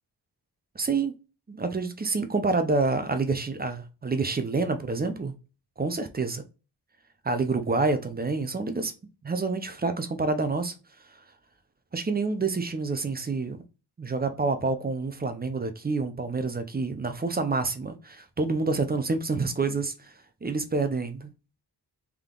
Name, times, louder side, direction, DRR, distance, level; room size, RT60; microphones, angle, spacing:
voice 1, 0.8-1.1 1.5-5.3 5.8-6.4 7.2-8.9 9.2-10.7 11.9-13.6 14.0-20.1 20.4-21.3, right 3 dB, 25° right, 0.4 m, -28 dB
3.5 x 2.8 x 3.6 m
wide cardioid pair, 170°, 42 cm